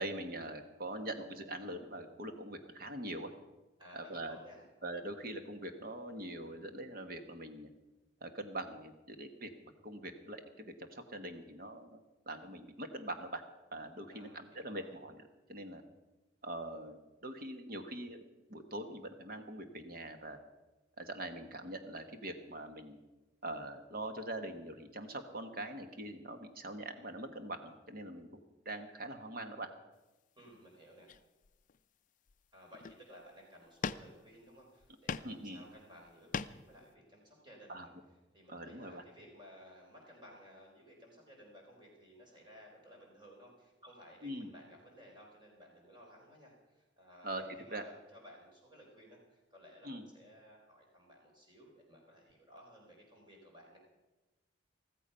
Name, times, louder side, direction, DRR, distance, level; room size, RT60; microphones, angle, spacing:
voice 1, 0.0-3.3 3.9-4.4 4.8-7.7 8.2-9.5 9.8-12.0 12.3-13.4 13.7-15.2 15.5-15.8 16.4-18.2 18.5-20.4 21.0-23.0 23.4-28.3 28.6-29.7 35.2-35.6 37.7-37.9 38.5-39.0 44.2-44.5 47.2-47.4 47.7-47.8 49.8-50.0, right 1 dB, 50° right, 7 dB, 1.3 m, -43 dB
voice 2, 3.8-4.7 14.1-14.9 30.4-31.2 32.5-37.9 38.3-47.3 47.6-53.8, equal, 25° right, -1 dB, 4.2 m, -57 dB
sound 1, 30.4-30.6 31.1-31.8 32.3-32.4 32.7-33.2 33.8-34.4 34.8-35.4 35.8-36.8, left 5 dB, 40° left, 0.4 m, -41 dB
14.5 x 14.0 x 5.6 m, 1.1 s
head